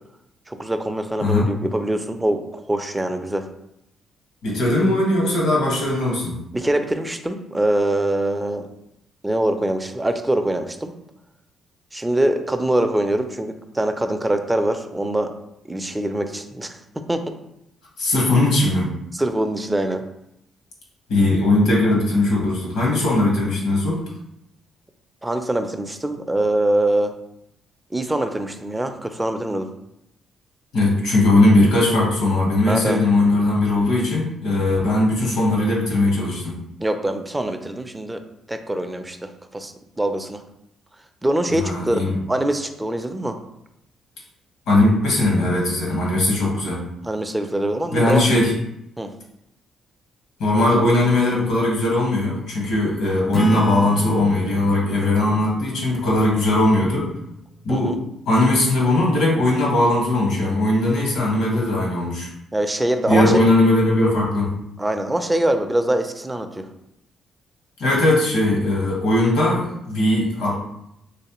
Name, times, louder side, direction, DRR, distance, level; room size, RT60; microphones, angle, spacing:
voice 1, 0.5-3.5 6.5-8.7 9.2-10.9 11.9-15.3 15.7-16.8 17.1-17.3 19.1-20.0 25.2-27.1 27.9-29.7 32.7-33.0 36.8-38.2 38.5-40.4 41.2-43.4 47.0-48.3 49.0-49.1 57.7-58.0 62.5-63.4 64.8-66.7, right 1 dB, 10° right, 6 dB, 0.4 m, -23 dB
voice 2, 4.4-6.3 18.0-18.9 21.1-24.0 30.7-36.5 41.6-42.2 44.7-46.8 47.9-48.5 50.4-57.1 57.6-58.0 58.3-62.3 63.1-64.5 67.8-70.6, left 2 dB, 80° left, -3 dB, 1.3 m, -19 dB
Acoustic guitar / Strum, 53.3-58.3, right 1 dB, 40° left, 0.6 m, -32 dB
3.2 x 3.1 x 3.0 m, 0.80 s
cardioid pair, 90°, 0 cm